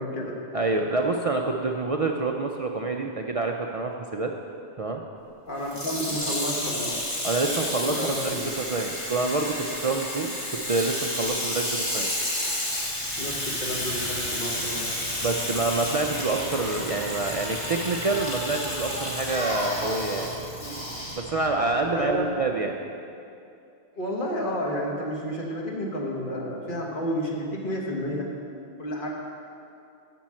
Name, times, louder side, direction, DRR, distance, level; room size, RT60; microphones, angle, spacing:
voice 1, 0.0-0.4 5.5-7.0 7.9-8.5 13.2-14.9 21.9-22.3 23.9-28.3 28.8-29.1, equal, 50° left, -2 dB, 1.4 m, -31 dB
voice 2, 0.5-4.3 4.8-5.0 7.2-10.4 10.7-12.1 15.2-20.3 21.2-22.8, right 3 dB, 55° right, 2 dB, 0.4 m, -27 dB
Water tap faucet / Sink (filling or washing), 5.6-19.6 20.3-20.4, left 1 dB, 30° left, 1.6 m, -31 dB
Bicycle, 12.4-22.4, equal, 75° left, 2.7 m, -35 dB
7.3 x 6.2 x 7.5 m, 2.6 s
omnidirectional pair, 1.1 m